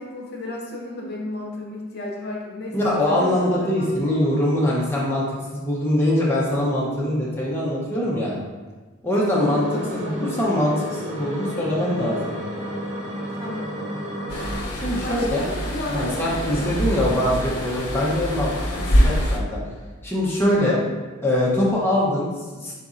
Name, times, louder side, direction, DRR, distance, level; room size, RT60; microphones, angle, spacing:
voice 1, 0.0-3.9 9.2-10.3 13.3-13.7 15.0-17.2 18.9-19.2, left 1 dB, 50° left, -2 dB, 0.8 m, -33 dB
voice 2, 2.7-5.2 5.5-8.4 9.0-9.6 9.9-12.3 14.7-15.5 15.9-19.6 20.0-20.8 21.2-22.7, left 1 dB, 10° left, -6 dB, 0.6 m, -23 dB
sound 1, 9.2-14.6, equal, 35° right, 0.7 m, -32 dB
sound 2, 14.3-19.4, equal, 90° left, 0.6 m, -24 dB
4.0 x 4.0 x 2.4 m, 1.3 s
head